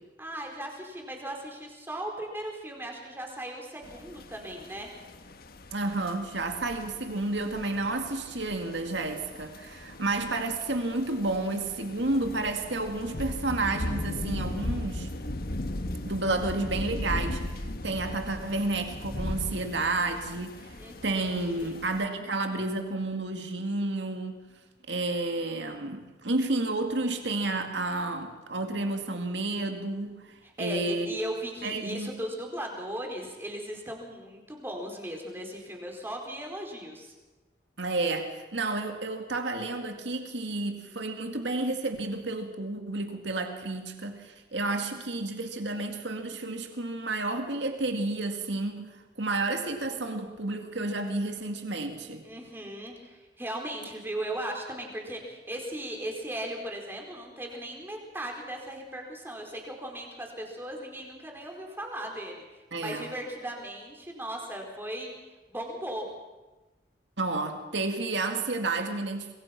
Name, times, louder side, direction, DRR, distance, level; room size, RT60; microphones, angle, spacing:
voice 1, 0.2-4.9 20.8-21.7 30.4-37.1 52.2-65.1 65.5-66.1, right 1 dB, 15° right, 1 dB, 4.4 m, -37 dB
sound 1, 3.8-22.0, left 1 dB, 55° left, 1.4 m, -38 dB
voice 2, 5.7-15.1 16.0-24.4 24.9-31.2 31.6-32.2 37.8-52.2 62.7-63.1 67.2-69.3, right 2 dB, 80° right, 5 dB, 2.2 m, -31 dB
26.5 x 21.5 x 6.0 m, 1.1 s
head